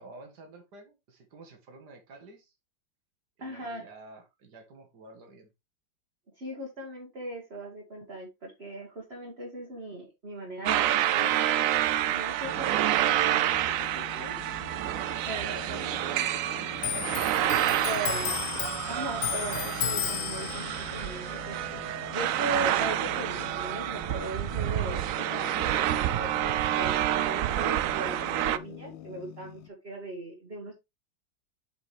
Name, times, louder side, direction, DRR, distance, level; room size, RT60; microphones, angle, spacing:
voice 1, 0.0-2.5 3.4-5.5, right 2 dB, 60° right, 4 dB, 2.3 m, -50 dB
voice 2, 3.4-3.9 6.4-11.6 12.1-13.6 13.9-14.3 15.3-17.0 17.8-18.3 18.9-21.6 22.1-30.7, right 1 dB, 35° right, -2 dB, 2.0 m, -39 dB
sound 1, 10.7-28.6, right 12 dB, 90° right, 0.7 m, -28 dB
sound 2, 12.4-29.7, left 11 dB, 80° left, 1.3 m, -47 dB
Clock, 16.8-23.8 24.1-25.4 25.7-26.5, left 10 dB, 60° left, 1.1 m, -35 dB
7.9 x 5.2 x 3.3 m, 0.22 s
omnidirectional pair, 2.0 m